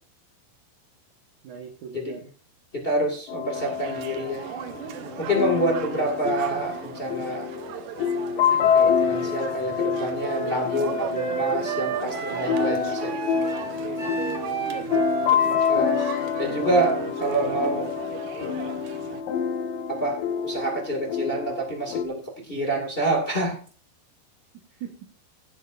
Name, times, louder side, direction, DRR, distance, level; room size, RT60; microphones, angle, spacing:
voice 1, 1.4-2.3 14.6-15.2 15.5-15.6 17.4-17.7 24.8-25.0, right 8 dB, 65° right, 1 dB, 2.0 m, -39 dB
voice 2, 2.7-4.4 5.2-7.5 8.7-13.1 15.7-16.0 16.4-17.9 19.9-22.2 22.5-23.6, right 1 dB, 40° left, -1 dB, 0.7 m, -27 dB
sound 1, 3.3-22.1, left 7 dB, 80° left, 2.0 m, -27 dB
sound 2, 3.5-19.2, right 10 dB, 85° right, 1.9 m, -39 dB
Wind instrument woodwind instrument, 10.2-17.7, right 4 dB, 25° right, 1.8 m, -32 dB
16.5 x 9.1 x 2.6 m, 0.40 s
omnidirectional pair, 5.3 m